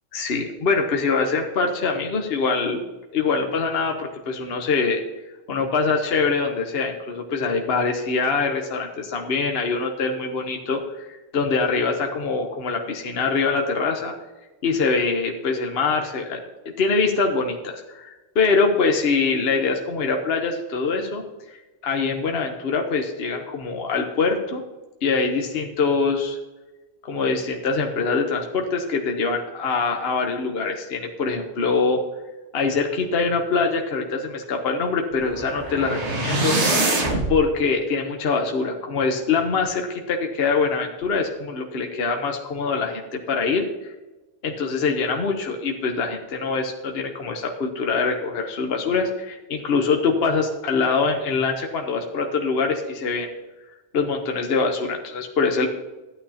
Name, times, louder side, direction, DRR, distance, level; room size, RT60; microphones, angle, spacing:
voice 1, 0.1-2.8 3.1-5.0 5.5-14.1 14.6-16.4 16.8-24.6 25.0-26.4 27.0-32.0 32.5-36.6 37.3-43.9 44.4-53.3 53.9-55.7, left 4 dB, 55° left, 3 dB, 1.1 m, -24 dB
sound 1, 35.2-37.3, right 2 dB, 65° right, 2.0 m, -24 dB
13.5 x 9.1 x 2.8 m, 1.1 s
omnidirectional pair, 1.3 m